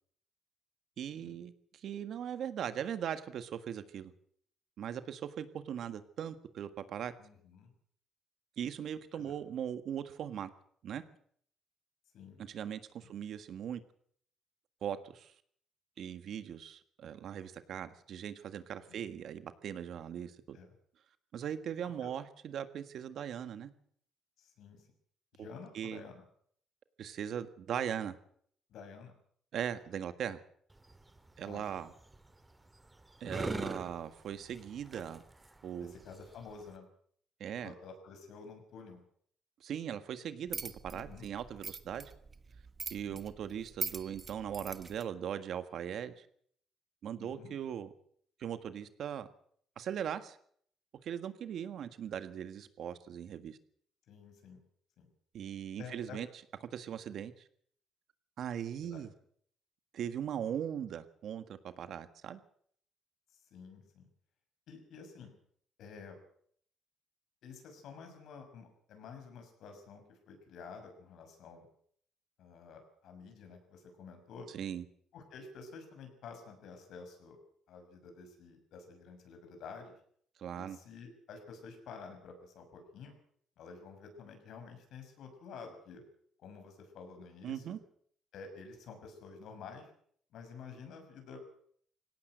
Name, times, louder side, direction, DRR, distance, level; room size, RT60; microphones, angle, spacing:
voice 1, 1.0-1.5 1.8-4.1 4.8-7.1 8.6-10.5 10.8-11.0 12.4-13.8 14.8-15.3 16.0-20.6 21.3-23.7 25.4-25.5 25.7-26.0 27.0-28.2 29.5-30.4 31.4-31.9 33.2-35.2 35.6-35.9 37.4-37.7 39.6-42.1 42.9-46.3 47.0-47.9 48.4-49.3 49.8-50.4 51.0-53.6 55.3-56.3 56.7-57.4 58.4-59.1 59.9-62.4 74.5-74.8 80.4-80.8 87.4-87.8, right 9 dB, 65° right, 11 dB, 1.7 m, -39 dB
voice 2, 7.2-7.7 9.1-9.3 12.1-12.4 13.0-13.1 18.9-19.0 20.5-20.7 22.0-22.1 24.4-24.9 25.3-26.2 28.7-29.1 31.4-31.8 35.8-36.9 37.6-39.0 40.9-41.3 43.0-43.2 47.2-47.6 54.1-54.6 55.0-55.1 55.8-56.2 58.8-59.1 63.5-64.1 64.7-65.3 65.8-66.2 67.4-71.7 72.4-74.5 75.1-77.4 77.7-79.9 80.6-83.2 83.6-86.0 86.4-87.8 88.3-89.9 90.3-91.4, left 5 dB, 75° left, 5 dB, 6.5 m, -50 dB
sound 1, 30.7-36.8, right 2 dB, 15° right, 2.0 m, -44 dB
sound 2, 40.5-45.0, right 4 dB, 35° right, 1.3 m, -43 dB
19.0 x 17.5 x 7.9 m, 0.63 s
cardioid pair, 100°, 0 cm